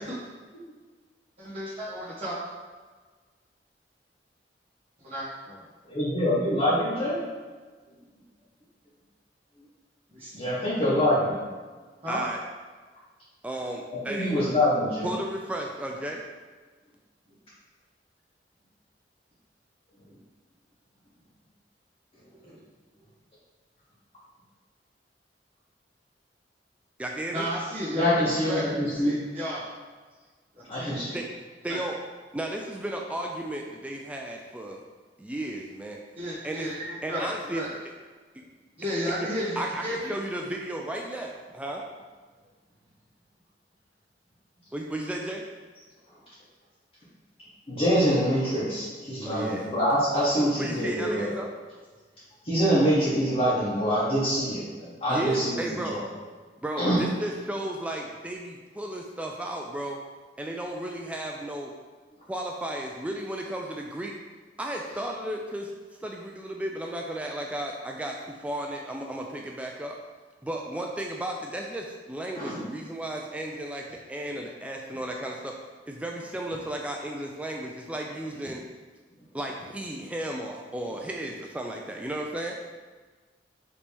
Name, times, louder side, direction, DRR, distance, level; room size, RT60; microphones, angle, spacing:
voice 1, 1.4-2.3 5.0-5.6 10.1-10.3 12.0-12.2 27.3-29.6 30.8-31.0 31.7-31.8 36.2-37.7 38.8-40.1, equal, 35° right, -12 dB, 1.2 m, -33 dB
voice 2, 5.9-7.2 10.3-11.4 14.1-15.1 27.9-29.2 30.7-31.2 47.7-51.3 52.4-55.6 55.9-56.0 56.8-57.0 72.4-72.6, equal, 35° left, -11 dB, 1.2 m, -25 dB
voice 3, 12.1-12.4 13.4-14.4 15.0-16.2 27.0-27.5 31.1-31.3 31.6-32.0 32.3-34.8 35.2-36.0 36.4-36.7 37.0-37.6 39.6-41.8 44.7-45.4 49.2-49.7 50.6-51.5 55.1-56.0 56.6-60.0 60.4-61.7 62.3-64.1 64.6-65.7 66.0-70.0 70.4-75.5 75.9-78.6 79.3-82.6, right 1 dB, 10° right, 0 dB, 0.3 m, -34 dB
5.1 x 3.0 x 3.4 m, 1.4 s
head